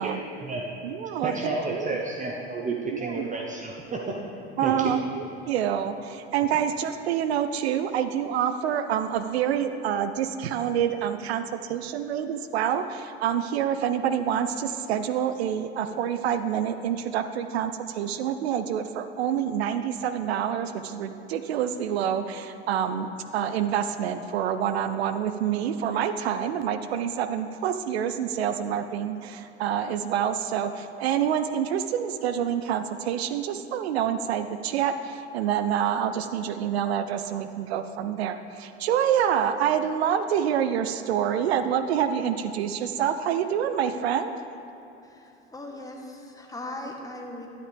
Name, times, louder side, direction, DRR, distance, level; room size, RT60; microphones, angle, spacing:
voice 1, 0.0-0.7 1.2-4.1 4.6-4.9, right 3 dB, 25° right, 0 dB, 0.9 m, -31 dB
voice 2, 0.8-1.9 2.9-3.3 4.6-44.3, right 9 dB, 70° right, 10 dB, 0.5 m, -27 dB
voice 3, 45.0-47.5, left 1 dB, 10° left, 1 dB, 1.3 m, -39 dB
11.0 x 9.7 x 3.4 m, 2.9 s
figure-of-eight pair, 75°, 33 cm